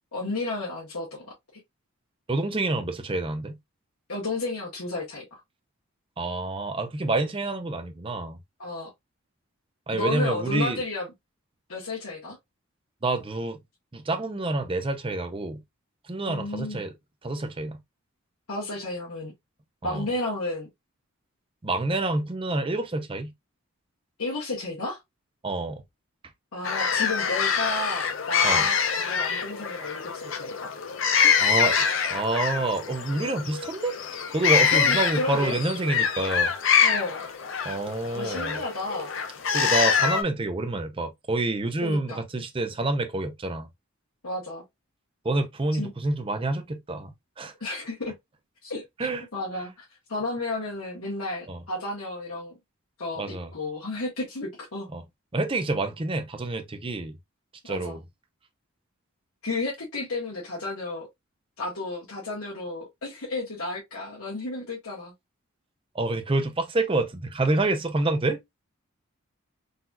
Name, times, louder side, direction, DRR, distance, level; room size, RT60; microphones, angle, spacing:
voice 1, 0.1-1.3 4.1-5.4 8.6-8.9 9.9-11.1 11.7-12.4 16.3-16.8 18.5-19.3 19.8-20.7 24.2-25.0 26.5-30.7 34.7-35.6 36.8-37.2 38.1-39.1 41.8-42.2 44.2-44.6 45.8-45.9 47.6-48.1 48.6-48.8 49.3-52.5 53.0-54.9 57.7-58.0 59.4-61.1 61.6-65.1, left 2 dB, 75° left, 1.4 m, -32 dB
voice 2, 2.3-3.6 6.2-8.4 9.9-10.8 13.0-13.6 13.9-15.6 16.1-16.9 17.2-17.8 19.8-20.1 21.6-23.3 25.4-25.8 28.4-28.7 31.4-31.9 32.1-33.9 34.3-36.5 37.6-38.6 39.5-43.7 45.2-47.5 49.0-49.2 51.5-51.6 53.2-53.5 54.9-55.0 55.3-57.2 57.7-58.0 65.9-68.4, right 2 dB, 25° right, 0.5 m, -28 dB
sound 1, 26.6-40.2, left 7 dB, 60° left, 0.6 m, -25 dB
3.9 x 2.8 x 2.3 m
head